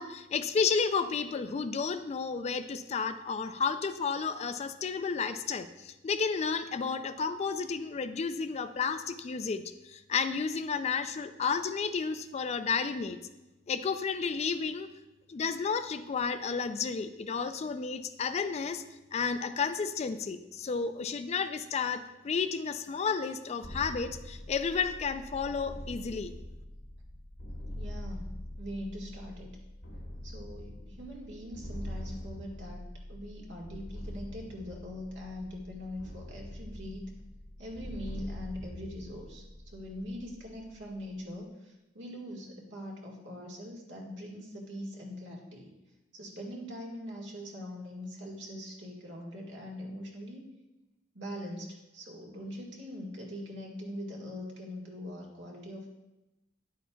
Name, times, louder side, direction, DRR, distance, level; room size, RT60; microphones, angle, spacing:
voice 1, 0.0-13.2 13.7-14.9 15.3-18.8 19.1-26.3, left 5 dB, 35° left, 10 dB, 0.3 m, -32 dB
sound 1, 23.6-41.3, left 1 dB, 90° left, 1.5 m, -44 dB
voice 2, 27.7-29.6 30.2-32.8 33.1-37.1 37.6-45.7 46.1-50.4 51.1-55.9, equal, 65° right, -1 dB, 1.6 m, -42 dB
10.5 x 8.3 x 2.3 m, 0.99 s
head